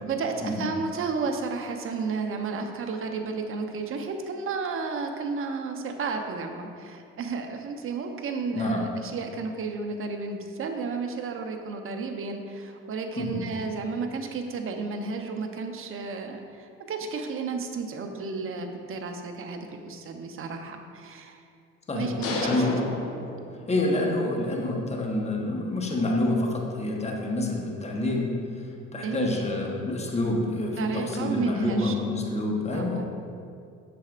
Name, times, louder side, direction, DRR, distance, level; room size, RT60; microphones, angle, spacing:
voice 1, 0.0-21.4 21.9-22.7 29.0-29.5 30.8-31.9 32.7-33.0, right 4 dB, 45° right, 5 dB, 0.8 m, -32 dB
voice 2, 8.5-8.8 13.2-13.4 21.9-22.1 22.4-22.9 23.7-28.4 28.9-33.0, left 2 dB, 20° left, 0 dB, 1.1 m, -27 dB
sound 1, 22.2-24.0, left 2 dB, 50° left, 1.0 m, -31 dB
7.8 x 6.6 x 2.5 m, 2.3 s
supercardioid pair, 85°, 29 cm